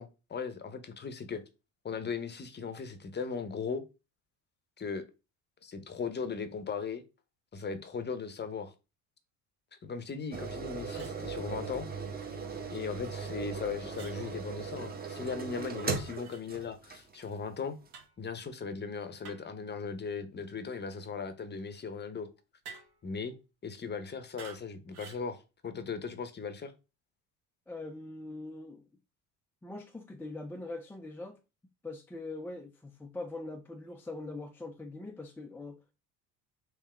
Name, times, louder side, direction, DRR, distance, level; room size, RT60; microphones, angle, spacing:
voice 1, 0.0-1.4 1.8-3.8 4.8-5.0 5.6-7.0 7.5-8.7 9.8-11.9 12.7-17.8 18.2-22.3 23.0-23.3 23.6-26.7, left 5 dB, 25° left, 0.7 m, -38 dB
sound 1, 10.3-17.3 17.9-18.0, right 5 dB, 20° right, 0.9 m, -38 dB
sound 2, 10.4-10.6 10.9-11.2 13.9-14.2 16.1-16.4 17.9-18.2 19.2-19.6 22.6-23.1 24.4-24.6 24.9-25.3, right 5 dB, 80° right, 1.4 m, -50 dB
voice 2, 27.7-28.8 29.6-31.4 31.8-35.9, left 2 dB, 5° left, 0.3 m, -42 dB
3.5 x 2.8 x 3.3 m
hypercardioid pair, 75°, 44 cm